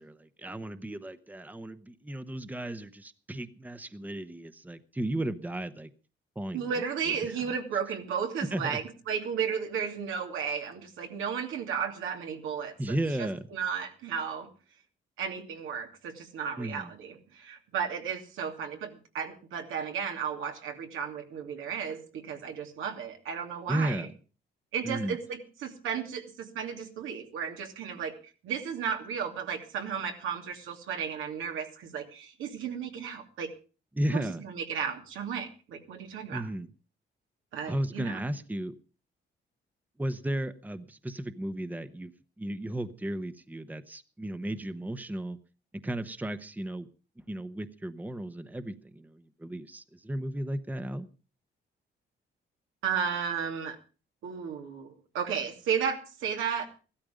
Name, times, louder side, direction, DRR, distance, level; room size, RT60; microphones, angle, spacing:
voice 1, 0.0-5.9 6.4-6.7 7.1-7.5 8.5-8.8 12.8-13.4 16.6-16.9 23.7-24.1 24.8-25.2 33.9-34.4 36.3-36.7 37.7-38.7 40.0-42.1 42.4-45.4 45.8-46.9 47.3-51.1, right 1 dB, 10° right, 12 dB, 1.0 m, -34 dB
voice 2, 6.5-14.5 15.2-24.1 24.7-28.1 28.4-33.5 34.1-36.5 37.5-38.3 52.8-53.8 54.2-56.7, right 7 dB, 85° right, 4 dB, 2.7 m, -34 dB
15.5 x 13.0 x 5.1 m, 0.35 s
cardioid pair, 90°, 20 cm